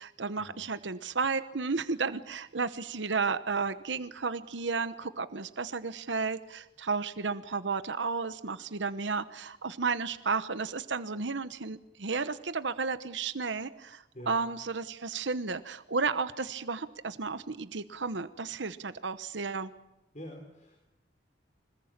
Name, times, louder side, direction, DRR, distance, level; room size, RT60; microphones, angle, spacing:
voice 1, 0.0-19.7, right 4 dB, 80° right, 13 dB, 1.0 m, -33 dB
voice 2, 20.1-20.8, equal, 40° left, 3 dB, 4.2 m, -45 dB
25.5 x 20.5 x 8.8 m, 0.91 s
head